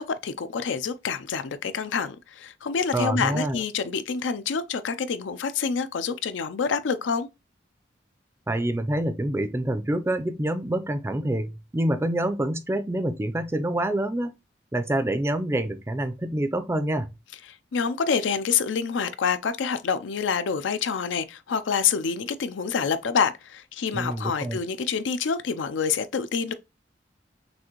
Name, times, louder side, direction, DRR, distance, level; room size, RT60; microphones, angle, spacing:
voice 1, 0.0-7.3 17.7-26.5, left 6 dB, 85° left, 0.5 m, -27 dB
voice 2, 2.9-3.6 8.5-14.3 14.7-17.1 23.9-24.6, right 1 dB, 15° right, 0.4 m, -26 dB
6.2 x 2.5 x 2.9 m
head